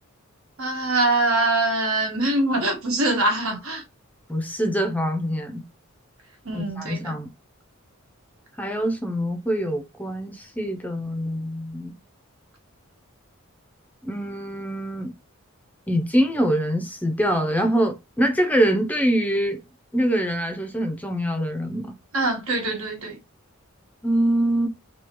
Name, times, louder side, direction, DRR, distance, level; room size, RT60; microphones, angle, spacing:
voice 1, 0.6-3.8 6.4-7.1 22.1-23.2, right 2 dB, 75° right, 1.3 m, -23 dB
voice 2, 4.3-5.6 6.5-7.3 8.6-12.0 14.0-15.1 15.9-19.6 19.9-21.9 24.0-24.7, equal, 5° left, 0.4 m, -24 dB
3.6 x 2.8 x 2.9 m
head